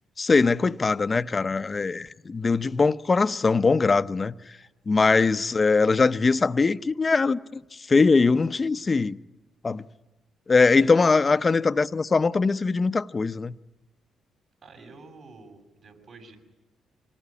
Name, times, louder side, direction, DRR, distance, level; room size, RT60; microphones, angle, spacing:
voice 1, 0.2-4.3 4.9-7.6 7.9-9.2 9.6-9.8 10.5-13.5, left 4 dB, 35° left, 0.8 m, -21 dB
voice 2, 14.6-16.4, right 3 dB, 60° right, 6.6 m, -48 dB
25.0 x 19.0 x 9.9 m
supercardioid pair, 65°, 0 cm